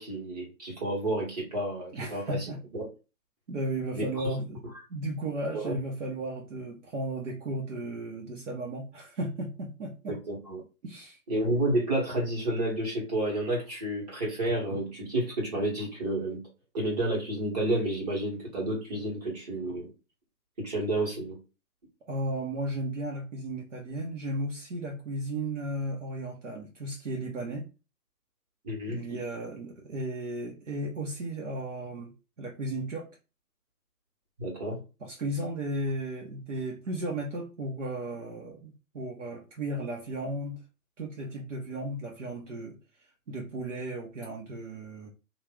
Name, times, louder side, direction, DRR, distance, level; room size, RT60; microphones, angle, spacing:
voice 1, 0.0-2.9 3.9-4.4 5.5-5.8 10.1-10.6 11.3-16.4 16.7-19.9 20.6-21.4 28.6-29.2 34.4-34.8, right 1 dB, 25° right, -2 dB, 1.2 m, -30 dB
voice 2, 1.9-2.6 3.5-4.6 4.9-10.2 10.8-11.2 22.0-27.7 28.9-32.1 32.4-33.1 35.0-40.6 41.0-42.8 43.3-45.1, right 1 dB, 50° right, -1 dB, 1.0 m, -35 dB
3.3 x 2.5 x 3.6 m, 0.30 s
hypercardioid pair, 165°, 47 cm